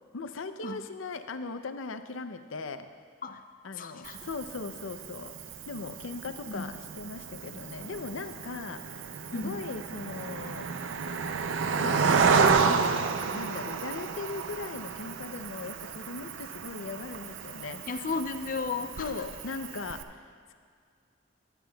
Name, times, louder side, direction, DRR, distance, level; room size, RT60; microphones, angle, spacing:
voice 1, 0.1-2.9 3.6-5.4 5.7-9.0 9.3-10.7 11.8-12.2 12.6-12.9 13.3-17.8 19.0-20.2, left 3 dB, 90° left, 9 dB, 0.6 m, -39 dB
voice 2, 3.8-4.2 6.5-6.7 9.3-9.6 17.9-19.1, left 4 dB, 45° left, 8 dB, 0.5 m, -34 dB
Cricket, 4.0-20.0, right 5 dB, 70° right, 0.5 m, -31 dB
18.5 x 10.5 x 2.3 m, 2.1 s
head